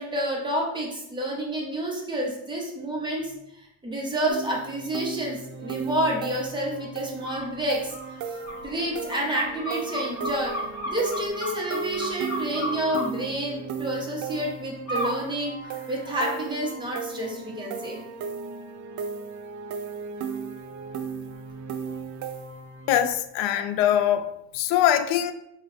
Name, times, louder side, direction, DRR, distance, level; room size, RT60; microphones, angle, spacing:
voice 1, 0.0-3.3 3.8-7.9 8.6-10.6 10.9-15.5 15.9-18.0, right 1 dB, 10° right, -3 dB, 1.0 m, -29 dB
sound 1, 4.3-23.1, right 6 dB, 45° right, 0.5 m, -36 dB
sound 2, 7.2-7.5 7.9-13.0 14.9-15.2 15.6-16.4, equal, 40° left, 1.1 m, -34 dB
voice 2, 22.9-25.3, left 11 dB, 85° left, 9 dB, 0.5 m, -23 dB
5.0 x 2.4 x 3.3 m, 0.80 s
cardioid pair, 135°, 42 cm